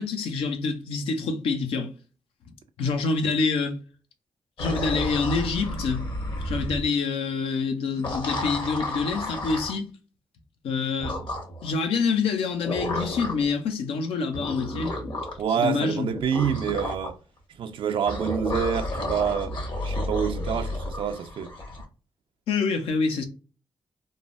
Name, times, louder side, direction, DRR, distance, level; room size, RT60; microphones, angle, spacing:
voice 1, 0.0-1.9 2.8-3.8 4.6-6.1 6.4-9.9 10.6-11.2 11.6-14.9 15.6-16.1 22.5-23.2, left 4 dB, 85° left, 0.5 m, -26 dB
sound 1, 4.6-6.9 7.9-9.8 11.0-11.7 12.6-13.5 14.3-15.4 16.1-17.1 18.0-21.8, left 1 dB, 60° left, 1.1 m, -31 dB
voice 2, 15.4-17.2 17.6-19.6 19.8-21.5, right 8 dB, 65° right, 0.4 m, -27 dB
3.2 x 2.1 x 2.4 m
supercardioid pair, 45°, 9 cm